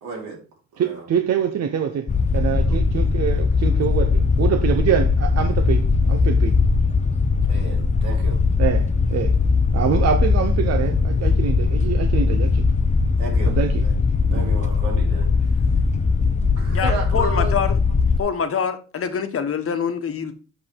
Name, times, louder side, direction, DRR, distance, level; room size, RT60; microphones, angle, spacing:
voice 1, 0.0-0.4 0.7-1.1 2.7-2.8 7.5-8.4 13.2-13.6 13.8-13.9 14.3-15.6 16.5-17.6, right 4 dB, 90° right, 3.2 m, -33 dB
voice 2, 0.8-2.1 2.3-6.6 8.6-9.3 9.7-12.7 13.4-13.8 14.3-14.5, right 8 dB, 55° right, 0.9 m, -25 dB
sound 1, 2.1-18.2, left 4 dB, 25° left, 0.6 m, -19 dB
voice 3, 16.7-17.8 18.2-20.3, left 7 dB, 50° left, 1.2 m, -25 dB
6.6 x 5.5 x 4.6 m
cardioid pair, 90°, 30 cm